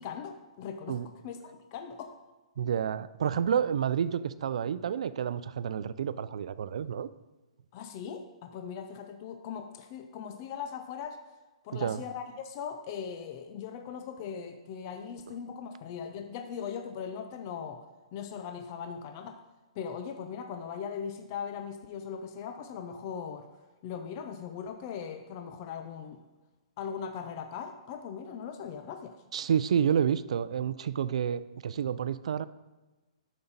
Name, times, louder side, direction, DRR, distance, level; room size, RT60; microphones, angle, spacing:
voice 1, 0.0-1.0 1.2-2.2 7.7-11.2 11.6-17.8 18.1-19.4 19.8-23.5 23.8-26.2 26.8-29.2, left 7 dB, 30° left, 7 dB, 0.5 m, -39 dB
voice 2, 2.6-7.1 11.7-12.0 29.3-32.4, right 8 dB, 65° right, 15 dB, 0.4 m, -29 dB
13.0 x 5.3 x 4.0 m, 1.2 s
hypercardioid pair, 170°, 4 cm